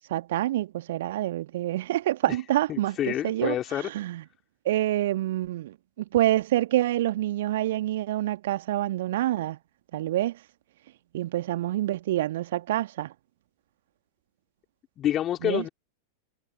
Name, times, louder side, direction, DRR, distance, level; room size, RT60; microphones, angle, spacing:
voice 1, 0.1-3.6 3.8-4.2 4.7-9.6 9.9-10.4 11.1-13.1 15.4-15.6, right 14 dB, 55° right, 1.9 m, -27 dB
voice 2, 2.7-3.9 15.0-15.7, left 11 dB, 30° left, 3.6 m, -28 dB
figure-of-eight pair, 90°, 0 cm